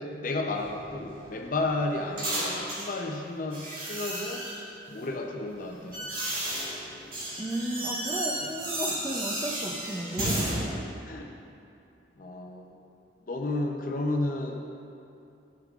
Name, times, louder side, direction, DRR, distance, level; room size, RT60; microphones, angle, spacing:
voice 1, 0.0-4.5 4.9-6.1 11.0-11.3 12.2-12.8 13.3-14.7, left 2 dB, 45° left, 2 dB, 0.6 m, -32 dB
sound 1, 0.5-3.0 3.5-4.7 5.5-10.6, right 1 dB, 45° right, 1.8 m, -33 dB
voice 2, 7.4-10.7, right 1 dB, 15° right, 0 dB, 0.4 m, -34 dB
10.5 x 7.0 x 2.4 m, 2.6 s
head